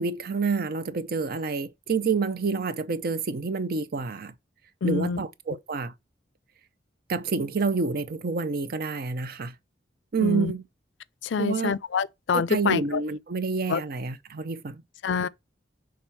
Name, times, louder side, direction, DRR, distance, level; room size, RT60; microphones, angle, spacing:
voice 1, 0.0-4.3 4.8-5.9 7.1-9.5 10.1-10.6 11.4-11.8 12.3-14.8, right 4 dB, 55° right, 0.6 m, -28 dB
voice 2, 4.8-5.2 10.2-10.5 11.3-12.8 13.7-13.8 15.0-15.3, left 5 dB, 80° left, 0.4 m, -26 dB
6.1 x 3.5 x 5.7 m
head